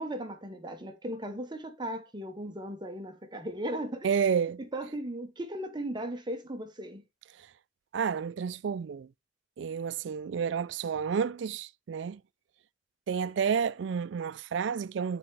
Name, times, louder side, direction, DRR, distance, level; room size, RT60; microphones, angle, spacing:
voice 1, 0.0-4.1 4.7-7.0, right 1 dB, 25° right, 0.9 m, -37 dB
voice 2, 4.0-4.6 7.9-9.1 9.6-12.2 13.1-15.2, right 6 dB, 65° right, 0.3 m, -30 dB
9.1 x 4.3 x 3.4 m
head